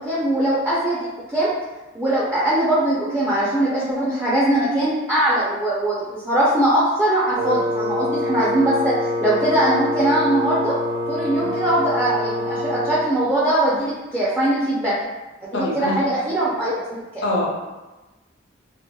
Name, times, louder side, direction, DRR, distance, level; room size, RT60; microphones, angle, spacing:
voice 1, 0.0-1.5 1.9-10.7 11.1-14.9 15.5-17.0, right 1 dB, 10° right, -9 dB, 0.4 m, -21 dB
Wind instrument woodwind instrument, 7.4-13.1, left 1 dB, 80° right, 0.3 m, -25 dB
voice 2, 15.5-16.0 17.2-17.5, left 1 dB, 70° left, -2 dB, 0.6 m, -23 dB
2.7 x 2.5 x 2.2 m, 1.1 s
head